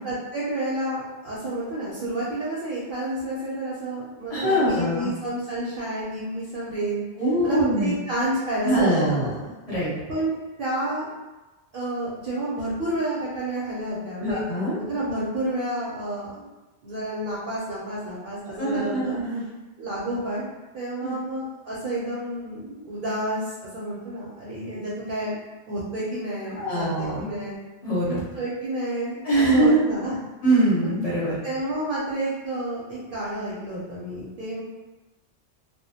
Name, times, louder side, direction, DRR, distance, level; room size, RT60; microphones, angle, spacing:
voice 1, 0.0-7.0 7.4-9.2 10.1-10.3 10.6-11.1 11.7-14.4 14.8-16.4 16.8-19.2 19.8-20.4 20.7-25.4 25.7-27.6 28.1-30.1 31.4-34.6, right 1 dB, 60° right, -7 dB, 0.6 m, -30 dB
voice 2, 4.3-5.1 7.2-8.0 8.6-9.3 9.7-9.9 14.2-14.7 18.6-19.4 21.0-21.1 26.6-27.2 27.8-28.2 29.2-29.8 30.4-31.4, right 1 dB, 40° left, -8 dB, 0.8 m, -23 dB
2.3 x 2.1 x 2.7 m, 1.1 s
omnidirectional pair, 1.1 m